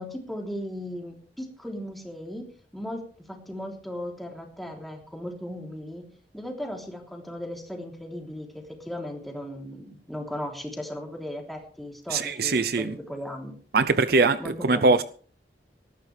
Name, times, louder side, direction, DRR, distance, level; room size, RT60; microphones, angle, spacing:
voice 1, 0.0-2.5 2.7-6.1 6.3-13.6 14.4-15.0, equal, ahead, 3.4 m, -37 dB
voice 2, 12.1-12.9 13.7-15.0, right 3 dB, 60° right, 0.6 m, -22 dB
18.5 x 14.0 x 3.4 m
head